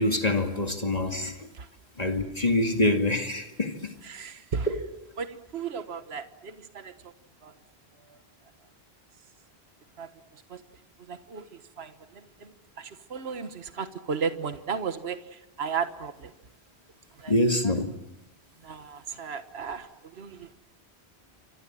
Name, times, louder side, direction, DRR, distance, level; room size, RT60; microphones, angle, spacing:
voice 1, 0.0-1.5 2.0-4.0 4.7-4.8 17.3-17.9, left 1 dB, 40° left, 4 dB, 2.4 m, -25 dB
voice 2, 4.0-4.7 5.2-7.1 7.4-7.5 8.0-8.2 10.0-10.6 11.1-16.3 17.2-17.3 17.6-17.7 18.6-20.5, right 6 dB, 70° right, 9 dB, 1.6 m, -35 dB
29.0 x 25.0 x 7.6 m, 0.91 s
omnidirectional pair, 1.1 m